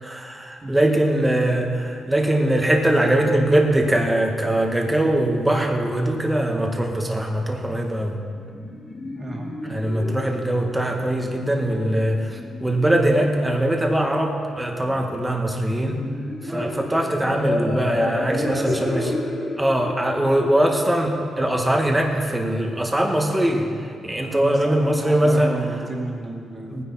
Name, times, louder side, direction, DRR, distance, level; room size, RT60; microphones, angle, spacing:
voice 1, 0.0-8.1 9.6-12.2 12.6-16.0 16.4-19.0 19.6-23.7 24.0-25.6 26.7-26.8, right 1 dB, 10° right, 2 dB, 1.6 m, -21 dB
sound 1, 8.1-22.1, left 2 dB, 35° left, 2.8 m, -32 dB
voice 2, 9.1-9.5 16.4-16.8 18.3-19.2 24.2-26.8, right 1 dB, 30° right, -1 dB, 2.5 m, -31 dB
18.5 x 9.9 x 4.3 m, 2.2 s
cardioid pair, 105°, 0 cm